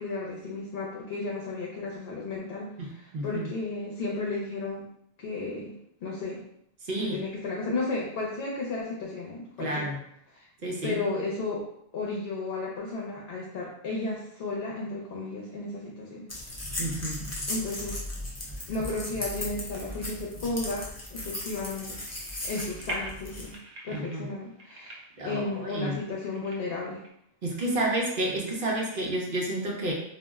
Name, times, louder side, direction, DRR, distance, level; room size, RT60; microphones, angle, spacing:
voice 1, 0.0-4.8 5.2-6.4 7.0-9.9 10.3-10.5 10.8-11.6 11.9-16.2 17.5-18.0 18.7-22.0 22.4-23.6 23.8-27.0, left 3 dB, 70° left, -3 dB, 0.8 m, -33 dB
voice 2, 2.8-3.5 6.8-7.2 9.6-10.0 10.6-11.0 16.8-17.2 23.9-24.3 25.2-26.0 27.4-29.9, right 1 dB, 60° right, -1 dB, 0.8 m, -30 dB
sound 1, 16.3-23.5, left 1 dB, 25° left, 0.3 m, -37 dB
sound 2, 21.5-27.1, right 1 dB, 90° right, 0.9 m, -44 dB
2.4 x 2.0 x 3.4 m, 0.73 s
omnidirectional pair, 1.1 m